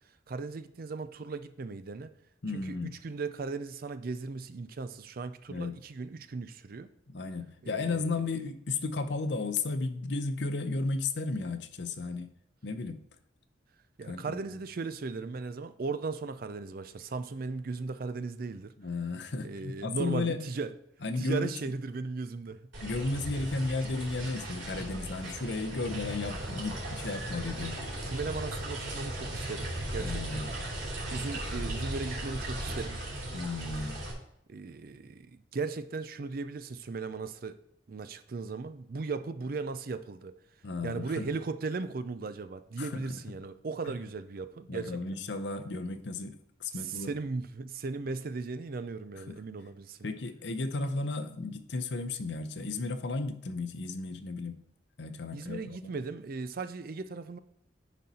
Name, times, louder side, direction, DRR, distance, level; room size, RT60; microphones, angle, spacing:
voice 1, 0.3-2.1 2.5-6.9 7.6-8.2 14.0-18.7 19.4-20.7 21.2-22.7 28.0-30.4 31.1-33.0 34.5-37.6 37.9-40.4 40.8-45.0 46.7-50.0 55.3-57.4, right 4 dB, 50° right, 0.4 m, -37 dB
voice 2, 2.4-3.0 5.5-5.7 7.1-12.3 12.6-13.0 14.1-14.4 18.8-20.5 21.0-21.5 22.8-27.8 30.0-30.6 33.3-34.0 40.6-41.3 42.8-43.1 44.7-47.1 49.3-49.4 50.0-54.6 55.0-55.9, left 3 dB, 65° left, 0.7 m, -34 dB
sound 1, 22.7-34.1, right 1 dB, 90° right, 3.1 m, -37 dB
10.0 x 4.1 x 4.2 m
head